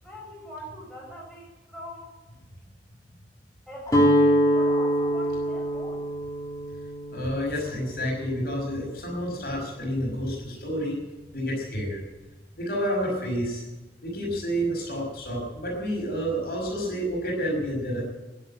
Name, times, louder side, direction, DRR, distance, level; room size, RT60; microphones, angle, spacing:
voice 1, 0.0-2.1 3.7-6.0, equal, 5° left, -5 dB, 6.7 m, -43 dB
Guitar, 3.9-9.9, equal, 20° left, 2.5 m, -25 dB
voice 2, 7.1-11.0 11.3-12.0 12.6-13.6 14.0-18.0, equal, 60° left, 0 dB, 5.4 m, -29 dB
12.0 x 10.5 x 10.0 m, 1.1 s
head